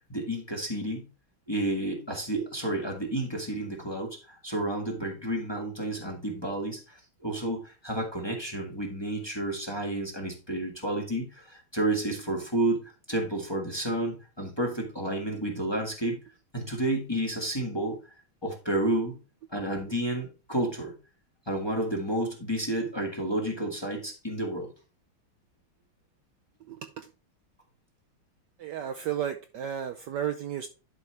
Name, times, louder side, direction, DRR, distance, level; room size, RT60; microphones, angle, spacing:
voice 1, 0.1-1.1 1.5-16.2 16.5-18.2 18.4-19.2 19.5-20.9 21.5-24.7, right 1 dB, 15° left, 1.5 m, -31 dB
voice 2, 26.7-27.1 28.6-30.7, right 10 dB, 70° right, 1.1 m, -33 dB
11.5 x 4.8 x 3.2 m
omnidirectional pair, 2.3 m